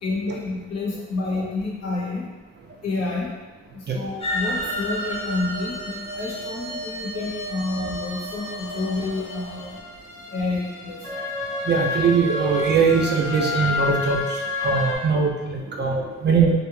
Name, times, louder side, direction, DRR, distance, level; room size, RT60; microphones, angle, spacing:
voice 1, 0.0-2.3 2.8-3.3 3.7-9.8 10.3-11.2, left 3 dB, 55° left, -4 dB, 0.9 m, -29 dB
sound 1, 4.2-9.8, equal, 20° left, 0.5 m, -32 dB
sound 2, 9.2-15.0, left 3 dB, 80° left, 1.1 m, -29 dB
voice 2, 11.7-14.2 14.6-16.5, right 5 dB, 35° right, -1 dB, 0.4 m, -21 dB
2.5 x 2.2 x 3.1 m, 1.2 s
cardioid pair, 90°, 30 cm